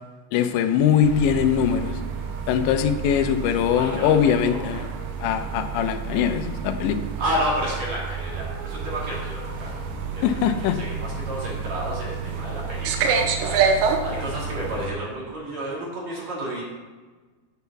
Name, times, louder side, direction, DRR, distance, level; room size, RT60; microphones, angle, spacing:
voice 1, 0.3-2.0 2.5-4.8 5.2-7.0 10.2-10.8, left 8 dB, 85° left, 8 dB, 3.0 m, -21 dB
sound 1, 1.0-14.9, right 5 dB, 85° right, 3.3 m, -29 dB
voice 2, 3.8-4.6 7.2-9.8 10.1-13.6 14.0-16.6, equal, 40° right, -5 dB, 3.7 m, -31 dB
9.9 x 8.2 x 7.0 m, 1.3 s
omnidirectional pair, 5.1 m